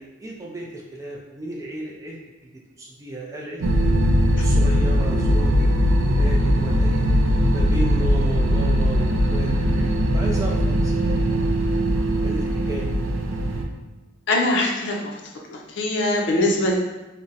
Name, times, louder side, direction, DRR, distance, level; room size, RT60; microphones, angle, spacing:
voice 1, 0.0-2.2 2.4-2.5 2.8-3.6 4.4-7.1 7.5-11.7 12.2-12.9, right 1 dB, 15° right, -3 dB, 0.4 m, -34 dB
sound 1, 3.6-13.6, equal, 90° right, 0.4 m, -20 dB
voice 2, 14.3-15.2 15.5-16.8, left 1 dB, 60° left, 0 dB, 0.5 m, -22 dB
2.5 x 2.1 x 3.9 m, 1.1 s
head